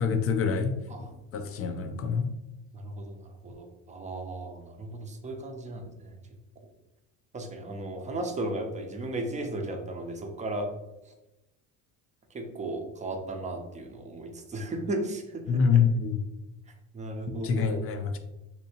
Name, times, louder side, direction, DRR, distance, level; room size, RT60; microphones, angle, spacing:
voice 1, 0.0-0.8 1.3-2.3 15.5-16.2 17.3-18.2, left 6 dB, 40° left, 7 dB, 0.4 m, -26 dB
voice 2, 2.7-6.2 7.3-10.7 11.1-11.2 12.3-15.8 16.9-17.8, right 1 dB, 20° right, 4 dB, 0.5 m, -35 dB
3.3 x 2.8 x 2.8 m, 0.99 s
supercardioid pair, 105°, 39 cm